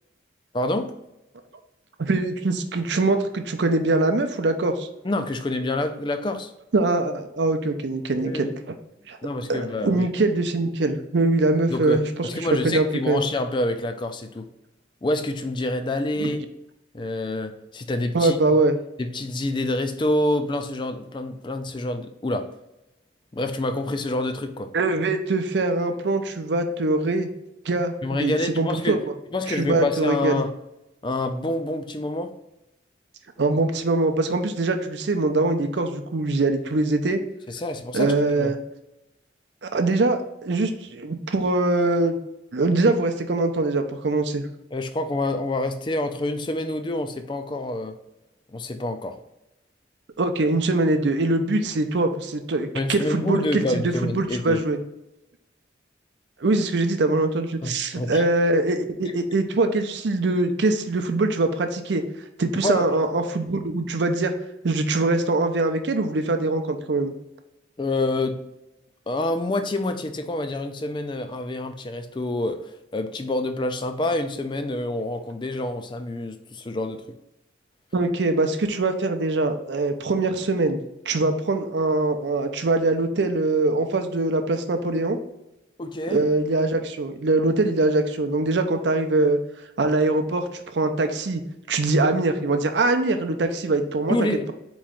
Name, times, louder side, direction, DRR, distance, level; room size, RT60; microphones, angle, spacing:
voice 1, 0.5-0.9 5.0-6.5 8.2-8.5 9.2-10.1 11.7-14.5 15.0-16.4 16.9-18.4 19.0-22.5 23.3-24.7 28.0-29.0 29.3-30.5 31.0-32.3 37.5-38.5 44.7-48.0 48.5-49.2 52.7-54.6 57.6-58.2 62.5-62.9 67.8-68.4 69.1-77.0 85.8-86.2 94.1-94.5, left 2 dB, 25° left, 8 dB, 0.4 m, -27 dB
voice 2, 2.0-4.9 6.7-8.5 9.1-9.2 9.5-12.3 12.6-13.2 16.2-16.4 18.1-18.8 24.7-27.3 27.7-29.0 29.5-30.4 33.4-37.2 37.9-38.6 39.6-42.2 42.5-44.5 50.2-54.8 56.4-62.0 62.4-64.3 64.6-67.1 77.9-80.8 81.1-85.2 86.1-89.4 89.8-91.4 91.7-94.2, right 2 dB, 70° right, 7 dB, 0.5 m, -23 dB
4.3 x 3.1 x 3.7 m, 0.90 s
head